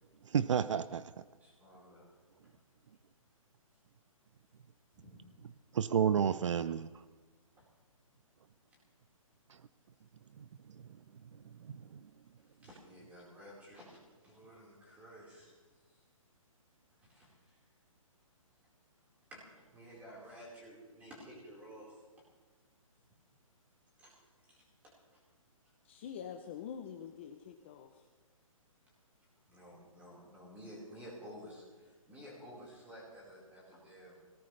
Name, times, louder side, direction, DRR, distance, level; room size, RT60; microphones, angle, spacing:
voice 1, 0.3-1.1 5.7-6.9 10.4-10.5 11.7-12.0, right 7 dB, 60° right, 15 dB, 0.6 m, -31 dB
voice 2, 1.4-2.1 2.4-2.5 4.9-5.2 7.6-7.7 12.6-15.5 15.9-16.0 17.0-17.6 19.3-22.0 24.0-25.2 29.5-34.2, equal, 10° right, -5 dB, 4.3 m, -53 dB
voice 3, 25.8-28.1, left 8 dB, 20° left, 6 dB, 0.6 m, -46 dB
23.5 x 18.0 x 3.3 m, 1.4 s
hypercardioid pair, 170°, 18 cm